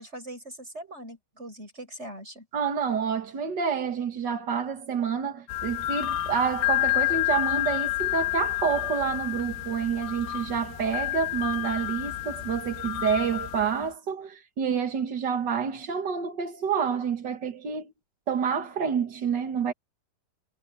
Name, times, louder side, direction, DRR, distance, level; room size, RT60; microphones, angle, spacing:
voice 1, 0.0-2.5, right 1 dB, 15° right, 7.8 m, -41 dB
voice 2, 2.5-17.9 18.3-19.7, right 7 dB, 55° right, 1.2 m, -28 dB
sound 1, 5.5-13.8, left 17 dB, 90° left, 3.4 m, -29 dB
omnidirectional pair, 4.4 m